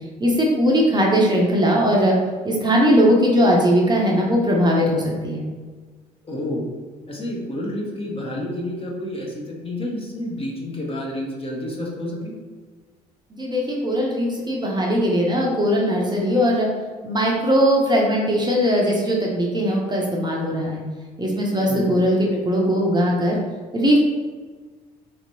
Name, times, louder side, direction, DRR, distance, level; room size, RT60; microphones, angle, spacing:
voice 1, 0.2-2.2 2.4-5.4 13.4-16.7 17.0-20.8 21.2-22.2 22.4-23.4 23.7-24.0, equal, 20° right, -2 dB, 0.7 m, -19 dB
voice 2, 6.2-6.6 7.1-12.3 21.7-21.9, left 1 dB, 30° left, -2 dB, 0.9 m, -29 dB
3.3 x 2.9 x 2.7 m, 1.4 s
hypercardioid pair, 55°, 20 cm